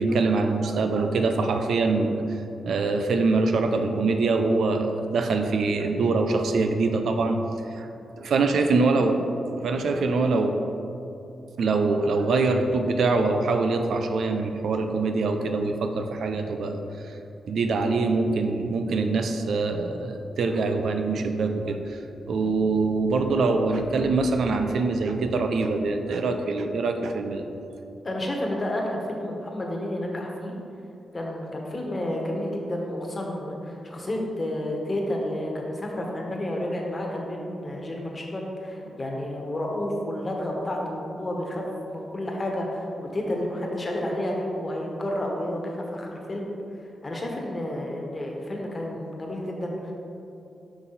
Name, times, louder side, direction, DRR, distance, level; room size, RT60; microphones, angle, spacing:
voice 1, 0.0-2.2 2.7-7.4 7.7-7.9 8.2-9.2 9.6-10.6 11.6-16.8 17.5-22.0 22.3-27.5, right 3 dB, 75° right, 6 dB, 0.5 m, -24 dB
voice 2, 28.0-30.5 31.1-46.5 47.0-49.9, left 1 dB, 35° left, 0 dB, 1.3 m, -30 dB
5.8 x 5.7 x 4.1 m, 2.8 s
supercardioid pair, 50°, 0 cm